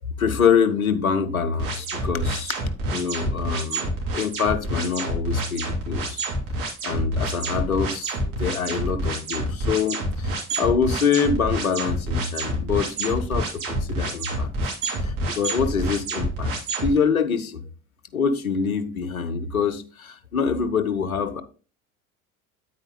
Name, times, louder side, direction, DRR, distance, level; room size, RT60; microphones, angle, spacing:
voice 1, 0.2-2.5 2.9-3.9 4.1-6.2 6.8-14.5 15.0-16.5 16.8-17.6 18.1-21.4, left 6 dB, 75° left, 0.9 m, -25 dB
sound 1, 1.6-16.9, right 1 dB, 50° right, 3.5 m, -28 dB
9.3 x 8.8 x 2.2 m
figure-of-eight pair, 65°, 42 cm